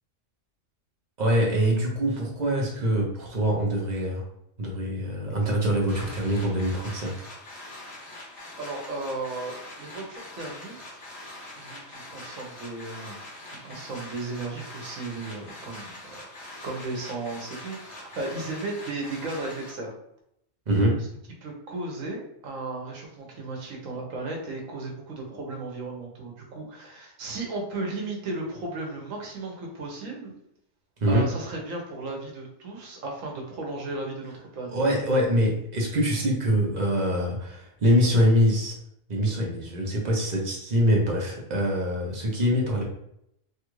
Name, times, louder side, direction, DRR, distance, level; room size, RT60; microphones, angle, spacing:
voice 1, 1.2-4.2 4.6-7.1 20.7-21.1 31.0-31.3 34.7-38.7 39.1-42.8, equal, 40° right, -2 dB, 0.8 m, -24 dB
sound 1, 5.9-19.7, left 1 dB, 65° left, 1.2 m, -43 dB
voice 2, 8.6-11.0 11.5-13.3 13.6-19.9 21.4-30.3 31.1-34.8, right 2 dB, 80° right, 0 dB, 1.2 m, -35 dB
3.2 x 2.4 x 3.0 m, 0.77 s
omnidirectional pair, 1.3 m